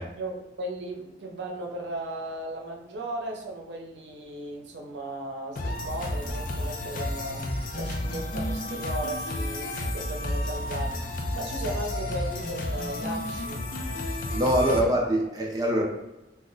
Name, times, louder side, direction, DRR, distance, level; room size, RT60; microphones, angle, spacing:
voice 1, 0.0-13.6 14.6-14.9 15.8-15.9, right 2 dB, 85° right, 1 dB, 0.6 m, -36 dB
sound 1, 5.6-14.8, left 1 dB, 50° left, 0.4 m, -31 dB
voice 2, 14.1-15.8, equal, 20° right, -1 dB, 0.5 m, -24 dB
2.3 x 2.1 x 3.7 m, 1.0 s
head